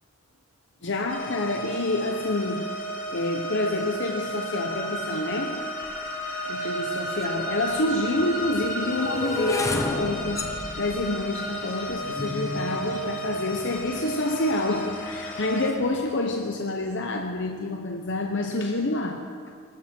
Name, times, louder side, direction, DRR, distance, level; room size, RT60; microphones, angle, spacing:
voice 1, 0.8-2.8 3.1-5.7 6.5-19.5, left 2 dB, 55° left, 3 dB, 0.9 m, -28 dB
sound 1, 1.1-15.7, right 1 dB, 35° left, 2.8 m, -33 dB
sound 2, 7.2-7.3 8.1-14.2 14.9-15.3 15.5-15.9, left 3 dB, 15° left, 0.7 m, -33 dB
25.0 x 12.5 x 4.4 m, 2.1 s
head